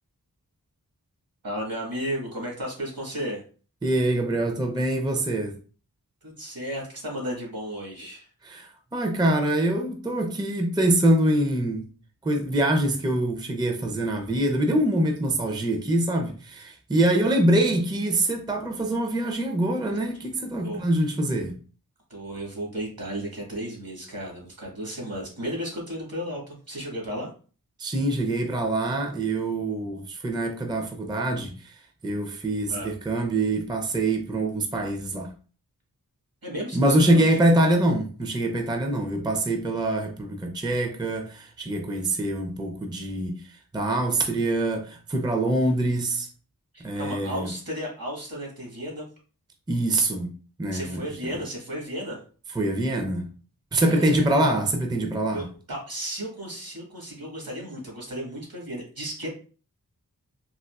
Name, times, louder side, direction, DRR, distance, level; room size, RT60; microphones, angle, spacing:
voice 1, 1.4-3.4 6.2-8.3 17.1-17.2 20.6-20.9 22.1-27.3 32.6-32.9 36.4-37.4 46.7-49.1 50.7-52.2 53.8-54.3 55.3-59.3, equal, 65° right, 1.5 m, -34 dB
voice 2, 3.8-5.5 8.4-11.9 12.2-21.6 27.8-35.3 36.7-46.3 46.8-47.5 49.7-50.3 50.6-51.3 52.5-53.3 53.7-55.5, right 1 dB, 10° right, 0.5 m, -24 dB
3.6 x 2.5 x 2.3 m
wide cardioid pair, 45°, 37 cm